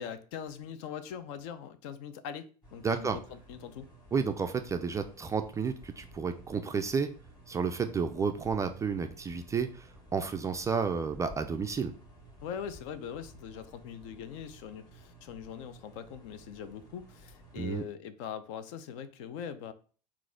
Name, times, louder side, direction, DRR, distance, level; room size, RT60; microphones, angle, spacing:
voice 1, 0.0-3.9 12.4-19.7, left 8 dB, 50° left, 0.5 m, -42 dB
sound 1, 2.6-17.8, equal, 20° left, 2.1 m, -54 dB
voice 2, 2.8-3.2 4.1-7.1 7.5-11.9 17.6-17.8, right 5 dB, 15° right, 0.3 m, -31 dB
3.9 x 2.4 x 4.3 m
figure-of-eight pair, 80°, 21 cm